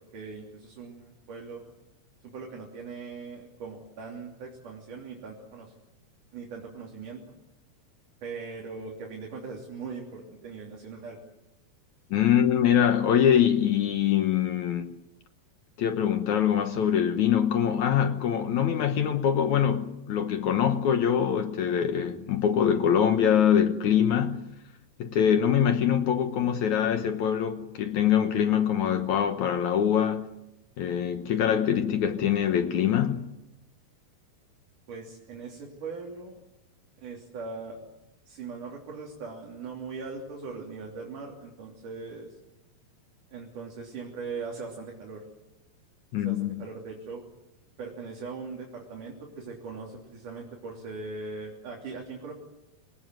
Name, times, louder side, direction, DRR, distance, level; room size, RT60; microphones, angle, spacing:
voice 1, 0.1-1.6 2.2-5.7 6.3-7.3 8.2-11.2 34.9-36.4 37.0-37.8 38.3-42.4 43.3-45.2 46.2-47.2 47.8-52.3, right 4 dB, 50° right, 4.7 m, -40 dB
voice 2, 12.1-14.9 15.8-24.5 25.0-30.3 30.8-33.3 46.1-46.6, left 9 dB, 70° left, 1.9 m, -24 dB
27.0 x 18.5 x 9.4 m
omnidirectional pair, 4.7 m